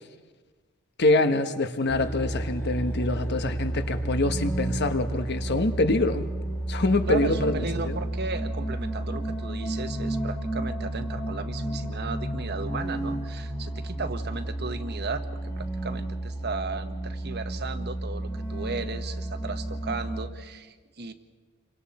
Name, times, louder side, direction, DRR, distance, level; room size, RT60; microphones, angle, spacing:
voice 1, 1.0-6.3 6.7-8.0, left 2 dB, 50° left, 8 dB, 1.3 m, -25 dB
sound 1, 1.9-20.3, right 1 dB, 10° left, 1.6 m, -32 dB
voice 2, 7.1-15.2 15.5-21.1, right 3 dB, 50° right, 9 dB, 1.3 m, -35 dB
29.0 x 24.0 x 4.3 m, 1.3 s
head